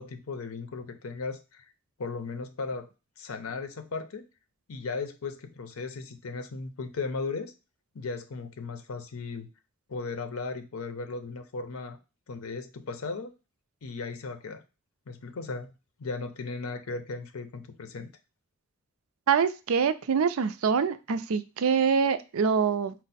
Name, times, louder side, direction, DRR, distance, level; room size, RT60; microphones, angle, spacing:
voice 1, 0.0-1.7 2.0-2.9 3.2-4.2 4.7-7.5 7.9-9.5 9.9-12.0 12.3-13.3 13.8-14.6 15.1-15.7 16.0-18.1, left 4 dB, 85° left, 9 dB, 0.6 m, -36 dB
voice 2, 19.3-22.9, right 6 dB, 80° right, 12 dB, 0.4 m, -25 dB
4.4 x 2.1 x 4.0 m, 0.29 s
head